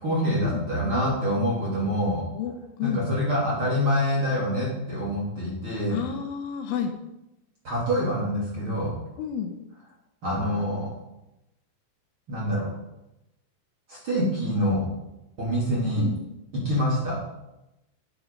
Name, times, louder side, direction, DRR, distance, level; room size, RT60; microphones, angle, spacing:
voice 1, 0.0-2.2 2.8-6.0 7.6-9.0 10.2-10.9 12.3-12.7 13.9-14.9 15.4-16.0 16.5-17.3, equal, 35° right, -6 dB, 2.7 m, -26 dB
voice 2, 2.4-3.1 5.9-6.9 9.2-9.5 16.0-16.2, left 8 dB, 75° left, 5 dB, 3.2 m, -30 dB
11.5 x 7.7 x 5.3 m, 0.91 s
omnidirectional pair, 5.9 m